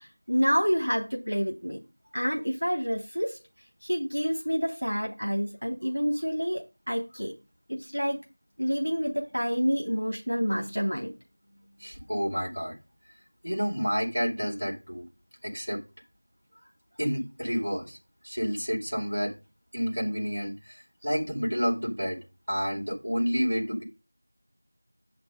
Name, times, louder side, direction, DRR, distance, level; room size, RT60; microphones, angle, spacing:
voice 1, 0.3-1.8 2.1-3.4 3.8-7.3 7.7-8.2 8.6-11.1, equal, 85° right, 0 dB, 3.2 m, -28 dB
voice 2, 11.8-12.8 13.4-15.1 15.4-15.8 17.0-18.0 18.2-19.3 19.7-22.2 22.5-23.8, equal, 50° right, -2 dB, 4.6 m, -29 dB
8.0 x 5.9 x 5.2 m, 0.29 s
figure-of-eight pair, 180°, 0 cm